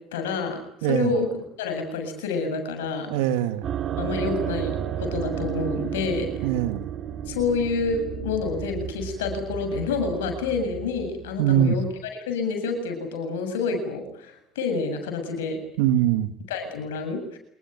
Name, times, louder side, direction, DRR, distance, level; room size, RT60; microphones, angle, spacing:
voice 1, 0.1-1.3 1.6-3.1 4.0-6.5 7.3-11.9 12.1-15.6 16.5-17.4, left 4 dB, 85° left, 6 dB, 7.6 m, -28 dB
voice 2, 0.8-1.1 3.1-3.6 6.4-6.9 11.4-11.8 15.8-16.3, right 11 dB, 80° right, 11 dB, 2.0 m, -22 dB
sound 1, 3.6-12.0, right 9 dB, 55° right, 2.8 m, -32 dB
28.5 x 20.5 x 9.4 m, 0.69 s
hypercardioid pair, 60°, 0 cm